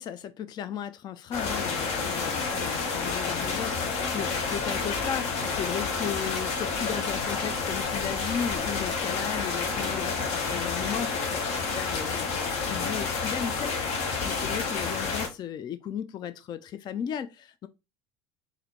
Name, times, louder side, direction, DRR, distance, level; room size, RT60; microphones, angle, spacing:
voice 1, 0.0-17.7, left 9 dB, 35° left, 0.3 m, -36 dB
sound 1, 1.3-15.3, left 4 dB, 55° left, 0.9 m, -29 dB
4.0 x 2.6 x 3.0 m
hypercardioid pair, 70°, 13 cm